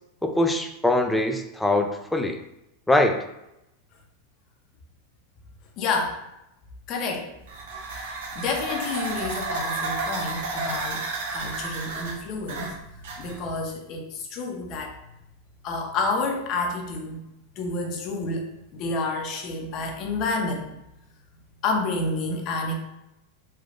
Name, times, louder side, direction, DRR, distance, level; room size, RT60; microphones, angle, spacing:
voice 1, 0.2-2.4 2.9-3.2, left 1 dB, 5° left, 5 dB, 0.3 m, -22 dB
voice 2, 5.8-6.2 6.9-7.3 7.9-8.1 8.4-11.0 11.3-12.8 13.2-15.0 15.6-17.2 17.6-18.5 18.7-20.7 21.6-22.8, left 3 dB, 45° left, 2 dB, 0.6 m, -29 dB
sound 1, 7.4-13.6, right 3 dB, 70° right, 0.7 m, -32 dB
3.2 x 2.3 x 2.4 m, 0.87 s
hypercardioid pair, 115°, 0 cm